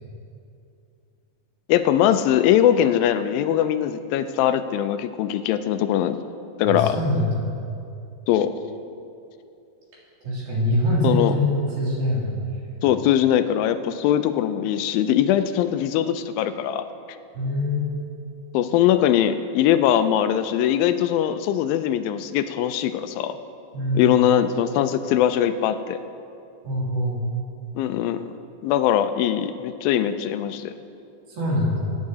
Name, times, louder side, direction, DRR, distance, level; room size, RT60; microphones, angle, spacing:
voice 1, 1.7-6.2 6.6-7.0 8.3-8.5 11.0-11.4 12.8-16.9 18.5-23.4 24.0-26.0 27.8-28.2 28.6-30.7, left 10 dB, 80° left, 10 dB, 2.2 m, -21 dB
voice 2, 6.6-7.4 10.2-12.7 17.3-17.9 23.7-24.1 26.6-27.2 31.3-32.0, left 1 dB, 75° right, -6 dB, 4.7 m, -24 dB
20.0 x 10.5 x 2.8 m, 2.6 s
omnidirectional pair, 4.3 m